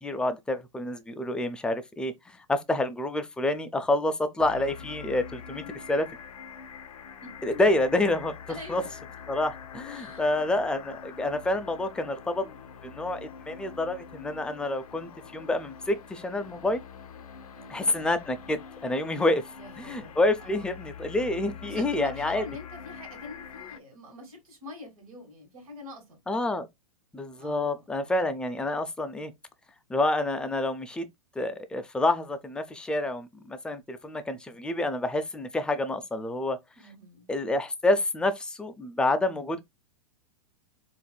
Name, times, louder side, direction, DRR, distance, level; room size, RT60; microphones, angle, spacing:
voice 1, 0.0-5.6 5.9-6.1 7.4-8.3 8.7-8.8 9.3-16.8 17.7-19.4 19.9-22.4 26.3-26.7 27.1-29.3 29.9-31.1 31.4-36.6 37.3-39.6, left 2 dB, 5° left, 0.4 m, -28 dB
sound 1, 4.4-23.8, left 7 dB, 80° left, 0.5 m, -45 dB
voice 2, 5.4-5.8 7.2-7.5 8.5-8.9 9.9-10.2 17.5-18.0 19.5-20.9 21.6-26.2 27.4-28.2 36.8-37.3, left 2 dB, 75° right, 1.7 m, -45 dB
4.1 x 2.5 x 2.3 m
hypercardioid pair, 110°, 19 cm